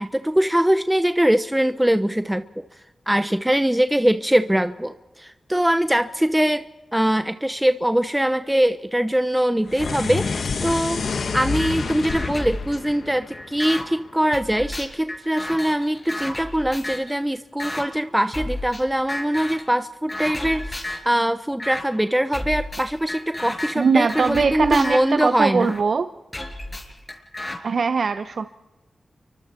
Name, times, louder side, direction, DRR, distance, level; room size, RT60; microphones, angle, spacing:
voice 1, 0.0-2.6 3.1-11.0 11.3-25.7, right 1 dB, 10° right, 10 dB, 0.9 m, -22 dB
sound 1, 9.7-14.1, left 4 dB, 75° left, 1.7 m, -28 dB
sound 2, 11.6-11.7 12.1-13.8 14.3-17.1 17.6-17.8 18.3-18.8 19.1-19.7 20.1-21.1 21.6-21.8 22.3-25.8 26.3-27.6, left 1 dB, 30° left, 6.0 m, -32 dB
voice 2, 23.8-26.1 27.6-28.5, right 5 dB, 70° right, 10 dB, 0.8 m, -21 dB
30.0 x 24.0 x 4.5 m, 1.1 s
cardioid pair, 60°, 0 cm